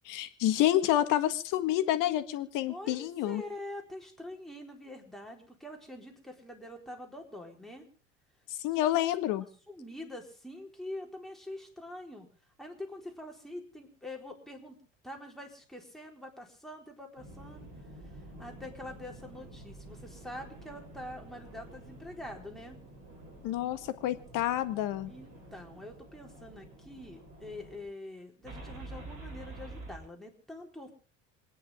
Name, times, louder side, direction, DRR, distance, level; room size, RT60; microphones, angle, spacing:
voice 1, 0.1-3.4 8.6-9.5 23.4-25.1, left 13 dB, 55° left, 10 dB, 1.7 m, -28 dB
voice 2, 2.7-7.9 8.7-8.8 9.7-12.3 12.6-14.8 15.0-17.7 18.0-22.8 25.0-30.9, left 1 dB, ahead, 1 dB, 4.3 m, -45 dB
sound 1, 17.2-27.8 28.4-30.0, right 2 dB, 65° right, 7.7 m, -49 dB
27.5 x 10.0 x 3.6 m, 0.40 s
hypercardioid pair, 75°, 38 cm